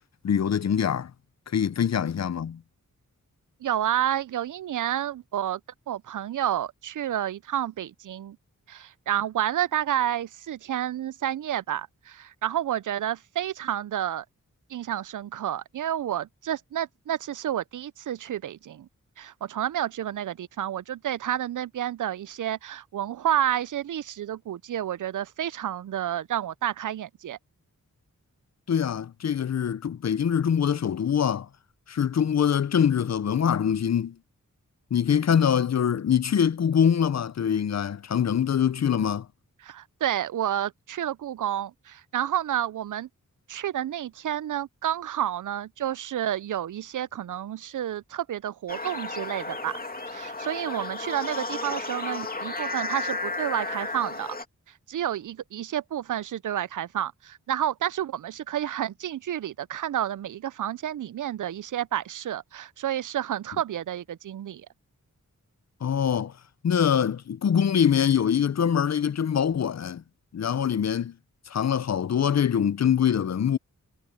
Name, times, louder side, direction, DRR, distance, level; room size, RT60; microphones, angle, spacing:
voice 1, 0.2-1.1 1.5-2.6 28.7-31.5 31.9-34.2 34.9-39.3 65.8-66.3 66.6-70.0 70.3-71.1 71.5-73.6, left 8 dB, 55° left, 0.6 m, -24 dB
voice 2, 3.6-5.6 5.9-8.4 8.7-14.2 14.7-18.9 19.2-27.4 39.6-43.1 43.5-49.8 50.1-54.3 54.9-64.7, right 11 dB, 70° right, 0.5 m, -30 dB
sound 1, 48.7-54.4, left 3 dB, 30° left, 2.4 m, -33 dB
wide cardioid pair, 90°, 32 cm